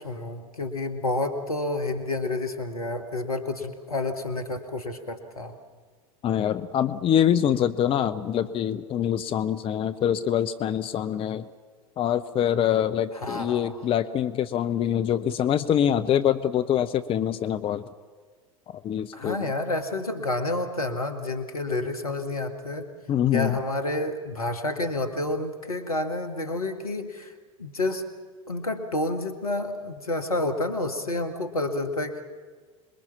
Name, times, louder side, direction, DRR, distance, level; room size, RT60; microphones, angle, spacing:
voice 1, 0.0-5.5 13.2-13.7 19.1-22.9 23.3-27.3 27.6-28.1 28.5-32.2, left 2 dB, 85° left, 9 dB, 1.8 m, -29 dB
voice 2, 6.2-11.5 12.0-17.9 18.7-19.5 23.1-23.6, left 10 dB, 30° left, 11 dB, 0.7 m, -25 dB
27.0 x 21.5 x 5.8 m, 1.5 s
figure-of-eight pair, 80°, 18 cm